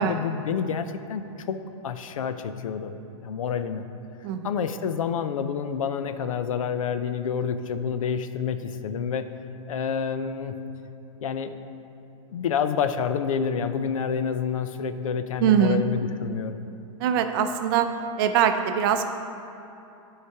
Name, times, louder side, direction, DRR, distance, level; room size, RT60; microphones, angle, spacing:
voice 1, 0.0-2.9 3.2-3.9 4.4-9.3 9.7-10.6 11.2-11.5 12.3-16.6, left 7 dB, 85° left, 10 dB, 0.6 m, -28 dB
voice 2, 15.4-15.8 17.0-17.9 18.2-19.1, right 8 dB, 45° right, 8 dB, 0.5 m, -22 dB
10.0 x 4.9 x 4.7 m, 2.8 s
hypercardioid pair, 150°, 17 cm